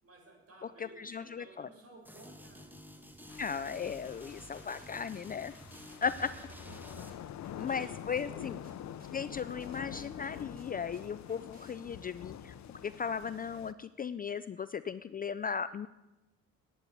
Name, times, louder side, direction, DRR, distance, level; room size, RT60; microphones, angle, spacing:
voice 1, 0.0-2.8 6.2-6.5 7.6-8.4, right 2 dB, 50° right, 0 dB, 5.5 m, -56 dB
voice 2, 1.0-1.7 3.4-5.5 6.0-6.3 7.6-8.6 9.1-12.5 12.8-15.9, left 6 dB, 30° left, 15 dB, 0.4 m, -36 dB
sound 1, 2.0-7.1, equal, 5° right, 1.5 m, -51 dB
sound 2, 3.3-13.7, left 10 dB, 65° left, 0.7 m, -46 dB
sound 3, 4.1-11.7, right 2 dB, 30° right, 3.6 m, -61 dB
10.0 x 8.4 x 8.4 m, 1.0 s
cardioid pair, 90°, 30 cm